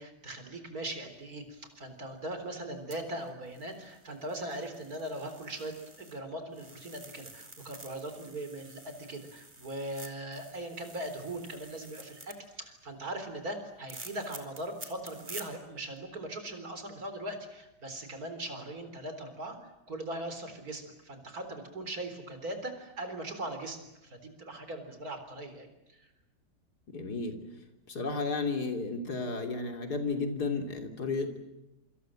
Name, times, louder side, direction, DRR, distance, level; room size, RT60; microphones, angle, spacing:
voice 1, 0.0-26.1, right 1 dB, 55° right, 8 dB, 4.4 m, -40 dB
sound 1, 2.9-6.2 6.5-12.3 13.9-15.5 16.0-16.1, right 2 dB, 25° right, 3.6 m, -49 dB
voice 2, 26.9-27.4 27.9-31.4, left 3 dB, 60° left, 5 dB, 3.6 m, -33 dB
27.5 x 25.5 x 7.7 m, 0.95 s
omnidirectional pair, 1.9 m